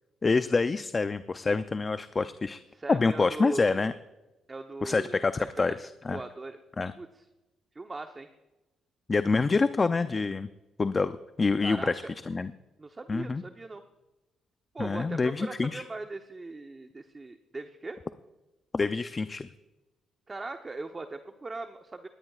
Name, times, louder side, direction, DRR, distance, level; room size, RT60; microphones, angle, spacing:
voice 1, 0.2-2.6 2.9-3.9 4.8-6.2 6.8-6.9 9.1-10.5 10.8-12.5 13.1-13.4 14.8-15.8 18.7-19.5, left 4 dB, 30° left, 11 dB, 0.5 m, -27 dB
voice 2, 2.7-3.9 4.5-5.1 5.7-5.8 6.1-6.6 7.0-7.2 7.7-8.3 11.6-12.1 12.8-13.8 14.7-18.0 20.3-22.1, right 3 dB, 25° right, 6 dB, 0.9 m, -39 dB
19.0 x 16.5 x 2.4 m, 1.1 s
cardioid pair, 90°, 0 cm